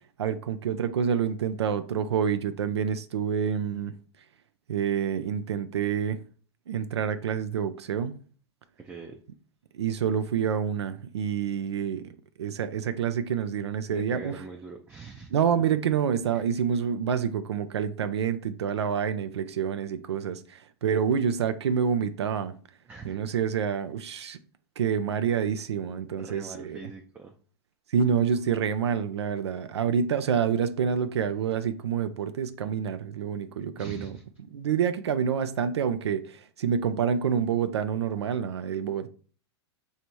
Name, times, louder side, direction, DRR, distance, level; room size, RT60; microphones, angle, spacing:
voice 1, 0.2-3.9 4.7-6.2 6.7-8.1 9.7-12.1 12.4-14.3 15.3-22.6 23.0-24.4 24.8-26.8 27.9-34.2 34.5-39.1, right 7 dB, 80° right, 0.4 m, -27 dB
voice 2, 8.8-9.2 13.9-15.3 16.3-16.5 22.9-23.2 24.1-24.3 26.2-27.4 33.8-34.2, right 4 dB, 15° right, 0.5 m, -43 dB
3.4 x 2.8 x 4.4 m
hypercardioid pair, 105°, 14 cm